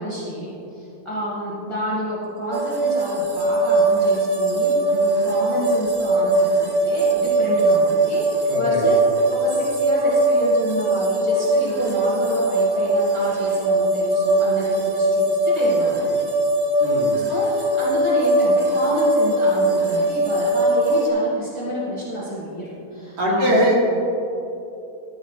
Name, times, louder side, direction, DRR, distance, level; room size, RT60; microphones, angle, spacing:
voice 1, 0.0-9.0 9.3-16.1 17.3-23.6, right 1 dB, 15° left, -8 dB, 2.1 m, -29 dB
sound 1, 2.5-21.1, right 1 dB, 30° right, 0.4 m, -20 dB
voice 2, 8.5-8.9 16.8-17.2 23.2-23.7, equal, 85° right, -4 dB, 2.5 m, -21 dB
13.0 x 6.1 x 4.5 m, 2.8 s
omnidirectional pair, 1.7 m